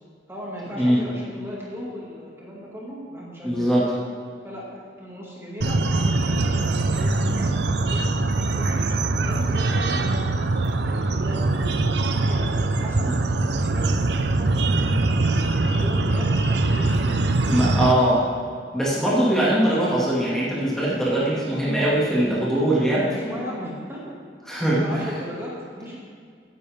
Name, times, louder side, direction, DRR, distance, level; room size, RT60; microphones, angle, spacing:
voice 1, 0.3-4.0 4.4-6.4 6.9-8.8 9.2-10.3 10.6-11.8 12.1-13.1 13.5-14.5 15.0-17.3 19.6-20.0 23.0-24.5 24.7-26.0, equal, 15° right, -5 dB, 2.3 m, -37 dB
voice 2, 3.4-3.9 17.5-18.2 18.7-23.1 24.5-24.8, right 1 dB, 5° left, -7 dB, 2.2 m, -21 dB
sound 1, 5.6-17.9, right 2 dB, 70° right, 0.7 m, -22 dB
15.5 x 10.0 x 3.6 m, 2.1 s
head